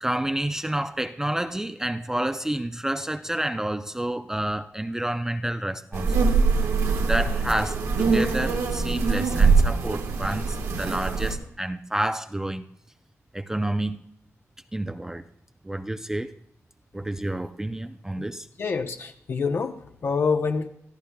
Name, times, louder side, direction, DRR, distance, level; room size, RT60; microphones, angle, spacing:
voice 1, 0.0-6.4 7.0-12.7 13.3-14.0 14.7-15.2 15.6-16.4 16.9-18.5, right 1 dB, 10° right, 0.4 m, -29 dB
sound 1, 5.9-11.3, right 4 dB, 85° right, 1.3 m, -23 dB
voice 2, 18.6-20.7, left 5 dB, 50° left, 0.7 m, -26 dB
26.5 x 13.5 x 2.2 m
wide cardioid pair, 125°, 5 cm